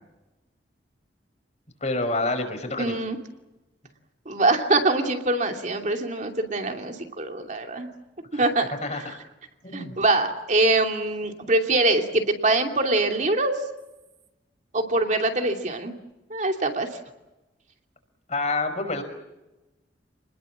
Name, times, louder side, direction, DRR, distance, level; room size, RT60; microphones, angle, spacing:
voice 1, 1.8-3.0 8.3-8.4 8.8-9.0 9.6-10.0 18.3-19.0, left 2 dB, 40° left, 7 dB, 5.4 m, -27 dB
voice 2, 2.8-3.2 4.3-7.9 8.3-8.7 9.7-13.5 14.7-15.9 16.3-16.9, right 2 dB, 45° right, 4 dB, 2.8 m, -23 dB
29.5 x 21.0 x 7.4 m, 1.0 s
head